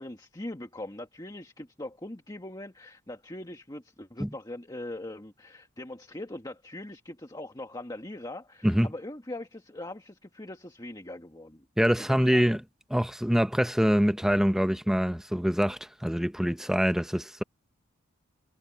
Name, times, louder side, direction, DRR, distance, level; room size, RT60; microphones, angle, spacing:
voice 1, 0.0-11.7 12.0-12.5, left 1 dB, 20° left, 1.7 m, -41 dB
voice 2, 11.8-12.6 12.9-17.4, equal, ahead, 0.7 m, -25 dB
head